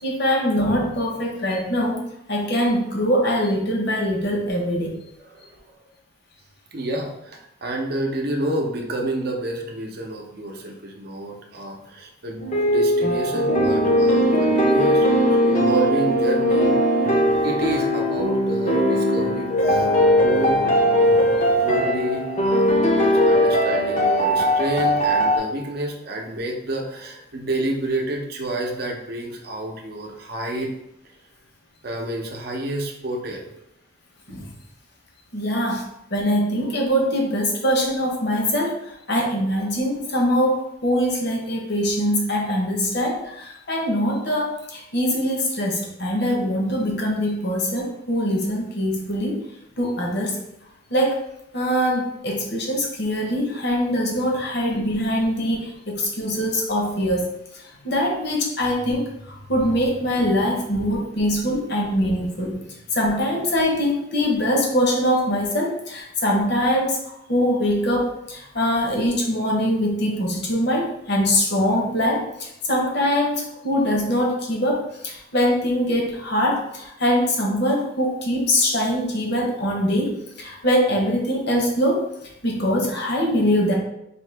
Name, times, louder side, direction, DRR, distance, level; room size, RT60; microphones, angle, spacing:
voice 1, 0.0-2.0 2.3-4.9 21.1-21.2 34.3-34.4 35.3-35.8 36.1-38.7 39.1-49.3 49.8-50.4 50.9-51.2 51.5-57.3 57.8-59.1 59.5-62.5 62.9-67.0 67.3-82.0 82.4-83.7, equal, 55° left, -1 dB, 1.0 m, -23 dB
voice 2, 6.7-16.7 17.4-19.8 20.2-20.9 21.3-22.7 22.9-30.7 31.8-33.5 60.2-60.3 61.5-61.6 62.0-62.1, right 1 dB, 50° right, 1 dB, 0.7 m, -29 dB
sound 1, 12.4-25.4, equal, 40° left, 0.6 m, -19 dB
4.3 x 2.8 x 3.3 m, 0.81 s
head